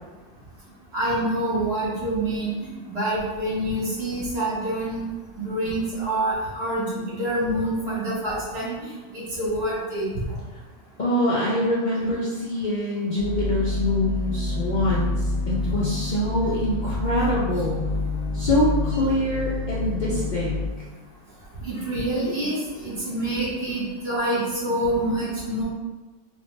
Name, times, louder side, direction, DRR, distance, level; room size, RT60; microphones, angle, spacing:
voice 1, 0.9-2.5 2.9-5.0 5.3-8.7 9.1-10.1 21.6-22.6 22.8-25.6, right 1 dB, 55° right, -8 dB, 1.7 m, -26 dB
voice 2, 11.0-17.8 18.3-20.6, left 1 dB, 50° left, -6 dB, 0.6 m, -24 dB
sound 1, 13.2-20.7, left 2 dB, 30° right, 0.7 m, -28 dB
3.2 x 3.0 x 3.2 m, 1.2 s
omnidirectional pair, 1.3 m